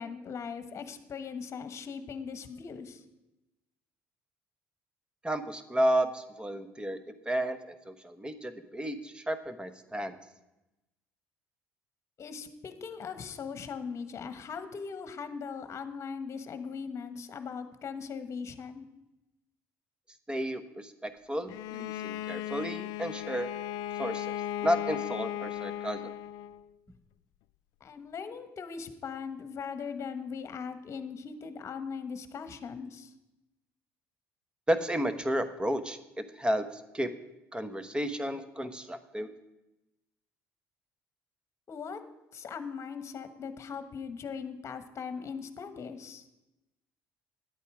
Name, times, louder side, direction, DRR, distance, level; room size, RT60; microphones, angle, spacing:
voice 1, 0.0-3.0 12.2-18.9 27.8-33.1 41.7-42.0 42.3-46.3, left 6 dB, 45° left, 10 dB, 1.2 m, -39 dB
voice 2, 5.2-10.2 20.3-23.5 24.0-24.4 24.6-26.1 34.7-37.1 37.5-39.3, equal, 15° right, 11 dB, 1.0 m, -32 dB
Bowed string instrument, 21.5-26.6, left 11 dB, 75° left, 0.3 m, -36 dB
10.0 x 8.4 x 4.9 m, 0.95 s
supercardioid pair, 75°, 7 cm